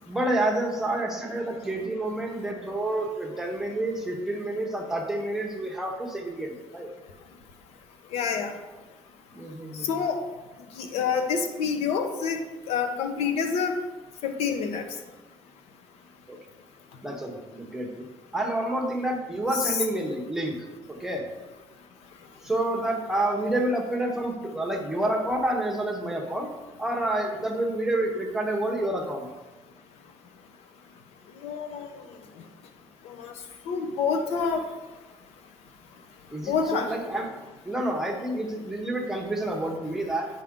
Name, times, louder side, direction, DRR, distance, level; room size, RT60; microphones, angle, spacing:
voice 1, 0.0-6.9 9.3-10.0 16.3-16.4 17.0-18.0 18.3-20.6 20.9-21.2 22.4-26.5 26.8-29.3 36.3-37.3 37.6-40.3, right 1 dB, 5° right, 0 dB, 0.8 m, -29 dB
voice 2, 8.1-8.5 9.8-10.2 10.8-12.4 12.7-13.8 14.2-14.9 19.6-19.8 31.4-31.9 33.0-33.3 33.7-34.6 36.5-36.9, left 6 dB, 85° left, 7 dB, 0.8 m, -27 dB
9.0 x 5.4 x 3.6 m, 1.2 s
cardioid pair, 180°, 10 cm